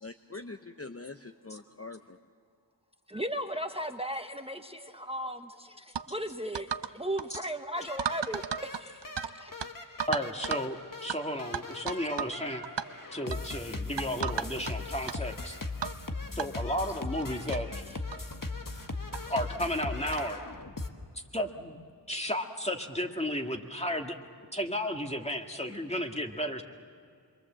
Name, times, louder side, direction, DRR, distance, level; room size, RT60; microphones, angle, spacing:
voice 1, 0.0-2.2, left 3 dB, 35° left, 6 dB, 0.9 m, -44 dB
voice 2, 3.1-8.9 15.1-15.2 17.3-17.4, equal, 15° right, 6 dB, 1.1 m, -36 dB
sound 1, 5.9-6.1 6.5-6.9 7.2-7.4 8.0-9.3 9.6-9.7 10.0-10.7 11.1-11.2 11.5-12.4 12.6-12.9 13.3-13.5 14.0-14.7 15.1-15.2 15.8-16.0 16.4-16.5 17.2-17.3 17.5-17.6 18.1-18.3 19.1-19.2 20.1-20.3, right 7 dB, 80° right, 0.7 m, -34 dB
sound 2, 7.8-20.9, left 3 dB, 50° left, 1.6 m, -39 dB
voice 3, 10.1-12.6 13.1-15.6 16.4-17.8 19.3-20.4 21.3-21.8 22.1-24.2 24.5-26.6, equal, 15° left, 3 dB, 2.0 m, -33 dB
27.5 x 23.0 x 7.5 m, 2.3 s
wide cardioid pair, 50°, 42 cm